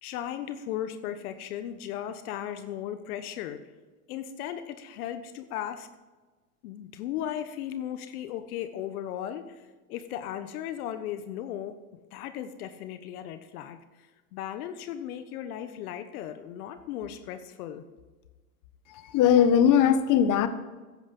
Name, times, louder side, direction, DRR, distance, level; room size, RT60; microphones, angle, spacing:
voice 1, 0.0-3.6 4.1-5.9 6.6-17.8, left 10 dB, 70° left, 10 dB, 1.2 m, -36 dB
voice 2, 19.1-20.5, left 9 dB, 45° left, 11 dB, 1.3 m, -19 dB
15.0 x 10.5 x 5.4 m, 1.3 s
hypercardioid pair, 110°, 45 cm